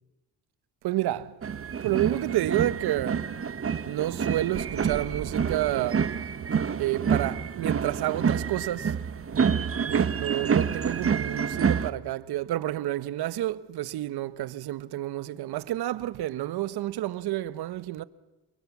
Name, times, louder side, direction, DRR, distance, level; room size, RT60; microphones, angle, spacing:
voice 1, 0.8-1.4 1.8-3.2 3.8-6.1 6.8-8.9 9.9-18.0, right 14 dB, 70° right, 1.2 m, -29 dB
sound 1, 1.4-11.9, right 6 dB, 35° right, 1.4 m, -28 dB
28.0 x 22.5 x 7.4 m
cardioid pair, 90°, 40 cm